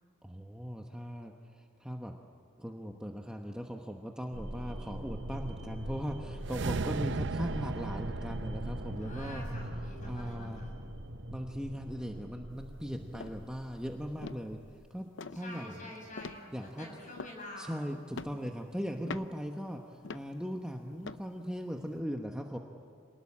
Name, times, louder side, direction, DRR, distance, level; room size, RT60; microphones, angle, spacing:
voice 1, 0.2-2.1 2.6-9.4 10.0-10.6 11.3-15.8 16.5-16.9 17.6-22.6, equal, 5° right, 2 dB, 1.1 m, -39 dB
sound 1, 4.3-14.8, equal, 80° right, 2.8 m, -42 dB
sound 2, 6.4-10.8, right 4 dB, 60° right, 0.6 m, -38 dB
voice 2, 9.0-10.7 15.3-17.8 18.2-18.5, left 1 dB, 40° left, 0 dB, 7.3 m, -47 dB
sound 3, 12.5-12.8 13.1-13.4 13.9-14.0 14.2-14.8 15.2-15.5 16.2-16.7 17.1-17.7 18.1-18.5 19.0-19.5 20.0-20.4 21.0-21.3 21.8-21.9, left 3 dB, 60° left, 0.7 m, -44 dB
27.5 x 20.0 x 8.7 m, 2.4 s
head